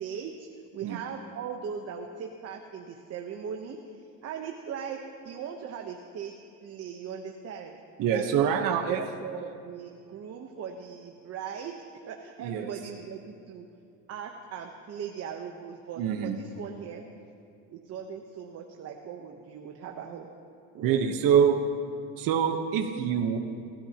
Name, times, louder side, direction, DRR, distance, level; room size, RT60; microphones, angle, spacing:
voice 1, 0.0-6.3 6.6-7.8 8.1-11.8 12.1-13.7 14.1-17.0 17.7-20.3 20.7-21.0 21.3-21.4, right 7 dB, 45° right, 3 dB, 1.0 m, -39 dB
voice 2, 8.0-9.0 12.4-12.7 16.0-16.4 20.8-21.5 22.2-23.4, right 8 dB, 65° right, 3 dB, 1.2 m, -25 dB
28.0 x 13.5 x 3.0 m, 2.5 s
cardioid pair, 125°, 36 cm